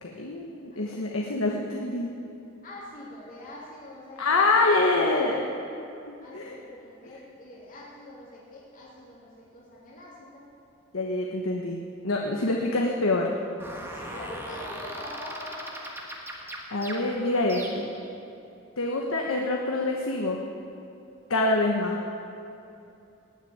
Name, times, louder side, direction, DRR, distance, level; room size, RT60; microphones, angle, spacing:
voice 1, 0.0-2.1 4.2-5.4 6.1-6.5 10.9-11.8 12.0-13.3 16.7-17.9 18.8-20.4 21.3-22.0, left 2 dB, 85° left, 0 dB, 1.2 m, -26 dB
voice 2, 2.6-5.4 6.2-10.4 13.9-15.8, left 1 dB, 40° left, -7 dB, 3.0 m, -43 dB
sound 1, 13.6-18.1, right 1 dB, 10° right, 1.5 m, -39 dB
19.0 x 6.5 x 8.8 m, 2.7 s
head